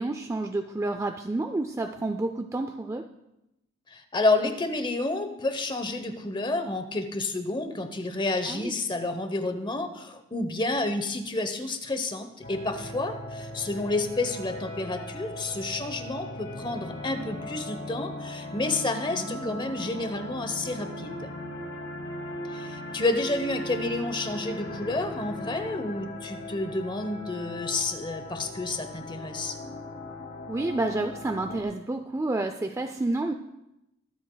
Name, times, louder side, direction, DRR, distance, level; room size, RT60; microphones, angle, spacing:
voice 1, 0.0-3.1 8.5-8.7 19.1-19.6 30.5-33.3, right 2 dB, 15° right, 6 dB, 0.4 m, -30 dB
voice 2, 3.9-21.3 22.5-29.6, left 2 dB, 25° left, 7 dB, 0.9 m, -30 dB
sound 1, 12.4-31.6, left 1 dB, 65° left, 2.1 m, -38 dB
23.0 x 8.0 x 2.3 m, 0.88 s
head